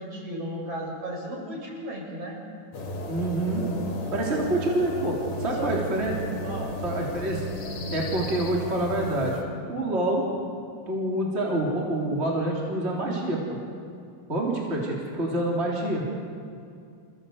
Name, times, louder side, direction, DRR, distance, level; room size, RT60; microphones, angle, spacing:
voice 1, 0.0-2.4 5.6-6.0 6.4-6.7, right 1 dB, 40° right, -2 dB, 7.1 m, -34 dB
sound 1, 2.7-9.4, equal, 60° left, 3.6 m, -34 dB
voice 2, 3.1-3.7 4.1-6.1 6.8-7.4 7.9-9.4 9.7-10.2 10.9-13.6 14.3-16.0, right 1 dB, 15° right, -3 dB, 3.4 m, -27 dB
28.0 x 17.0 x 7.9 m, 2.4 s
omnidirectional pair, 4.4 m